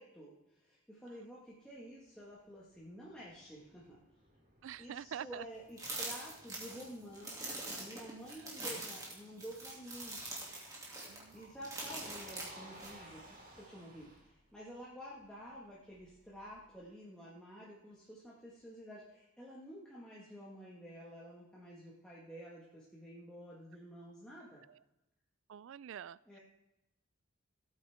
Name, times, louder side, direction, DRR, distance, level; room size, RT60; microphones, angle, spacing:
voice 1, 0.0-4.0 4.8-7.3 7.8-10.2 11.3-13.2 13.6-24.6 26.2-26.4, equal, 5° left, -7 dB, 1.7 m, -50 dB
Motor vehicle (road), 1.8-16.8, right 1 dB, 40° right, 3.1 m, -60 dB
voice 2, 4.6-5.4 11.1-11.5 25.5-26.2, right 9 dB, 65° right, 21 dB, 0.3 m, -45 dB
sound 1, 5.8-12.9, right 2 dB, 15° right, 2.5 m, -44 dB
17.0 x 8.8 x 3.6 m, 0.94 s
head